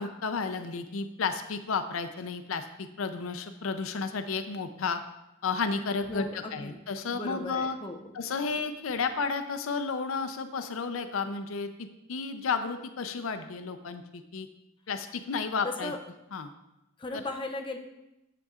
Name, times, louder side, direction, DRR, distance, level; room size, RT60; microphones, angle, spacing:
voice 1, 0.0-5.0 5.4-7.8 8.1-14.5 14.9-15.9 16.3-16.5 17.1-17.2, left 5 dB, 85° left, 9 dB, 0.5 m, -32 dB
voice 2, 6.1-6.8 7.1-8.0 15.6-16.0 17.0-17.8, left 2 dB, 25° left, 2 dB, 0.5 m, -37 dB
8.9 x 6.8 x 2.4 m, 0.91 s
head